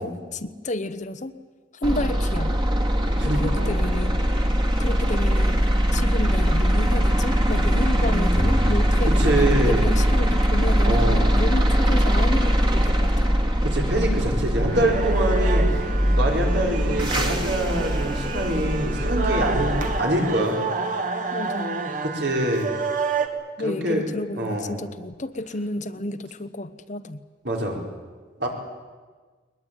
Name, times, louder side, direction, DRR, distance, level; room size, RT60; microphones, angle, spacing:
voice 1, 0.0-1.3 1.8-2.5 3.2-4.2 4.8-5.6 5.9-9.4 9.7-13.4 21.3-21.9 23.6-27.2, left 2 dB, 40° left, 11 dB, 1.0 m, -31 dB
sound 1, 1.8-20.0, equal, 25° right, 2.3 m, -21 dB
voice 2, 3.2-3.8 9.1-10.0 10.8-11.4 13.6-20.6 22.0-22.7 23.6-24.0 24.4-24.8 27.4-27.8 28.4-28.5, right 1 dB, 70° right, 0 dB, 4.9 m, -25 dB
sound 2, 14.7-23.3, right 4 dB, 45° right, 2.0 m, -29 dB
21.0 x 21.0 x 9.3 m, 1.4 s
head